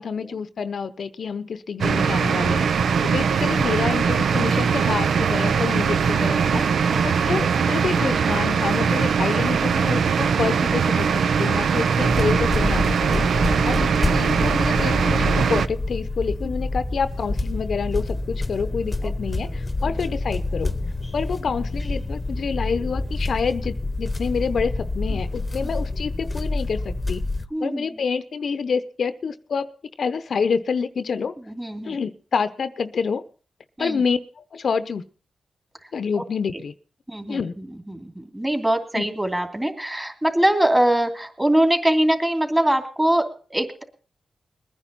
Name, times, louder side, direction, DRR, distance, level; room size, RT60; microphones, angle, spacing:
voice 1, 0.0-2.7 3.0-6.7 7.0-13.3 13.6-20.7 21.1-27.2 27.6-29.7 30.0-31.3 31.8-33.2 33.8-35.0 35.9-36.7 37.3-37.5 39.0-39.1, left 5 dB, 65° left, 13 dB, 0.7 m, -27 dB
sound 1, 1.8-15.7, right 6 dB, 80° right, 0.6 m, -21 dB
voice 2, 6.9-7.3 19.0-19.1 19.8-19.9 25.1-25.2 25.6-25.7 27.5-28.0 31.4-32.0 33.8-34.0 37.1-43.8, right 1 dB, 15° right, 5 dB, 2.8 m, -23 dB
sound 2, 12.0-27.5, left 2 dB, 25° left, 1.0 m, -27 dB
21.5 x 10.0 x 4.1 m, 0.39 s
cardioid pair, 80°, 0 cm